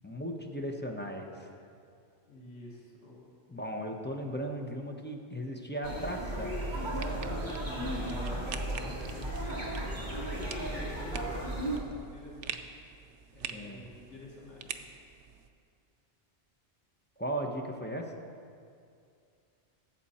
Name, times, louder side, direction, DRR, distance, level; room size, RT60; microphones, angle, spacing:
voice 1, 0.0-1.3 3.5-6.6 13.5-13.8 17.2-18.0, equal, 10° left, 1 dB, 0.8 m, -36 dB
voice 2, 2.3-3.2 7.6-12.6 13.3-14.8, left 1 dB, 85° left, -4 dB, 2.0 m, -47 dB
sound 1, 5.8-11.8, right 1 dB, 40° right, 1.9 m, -35 dB
sound 2, 6.8-15.5, right 7 dB, 85° right, 0.9 m, -46 dB
16.0 x 7.7 x 4.3 m, 2.4 s
omnidirectional pair, 1.2 m